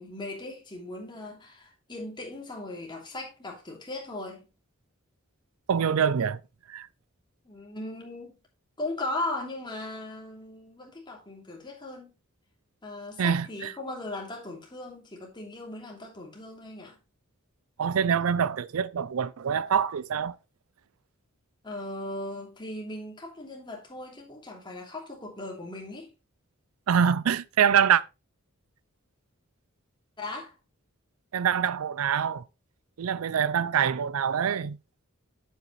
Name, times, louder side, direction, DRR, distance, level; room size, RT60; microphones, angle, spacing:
voice 1, 0.0-4.5 7.4-8.3 8.8-12.1 12.8-17.0 21.6-26.1 30.2-30.5 33.5-33.7, left 2 dB, 20° left, 2.9 m, -38 dB
voice 2, 5.7-6.4 6.7-6.9 13.2-13.7 17.8-20.4 26.9-28.0 31.3-32.4 33.0-34.8, right 7 dB, 80° right, 0.4 m, -25 dB
8.7 x 7.9 x 3.2 m
head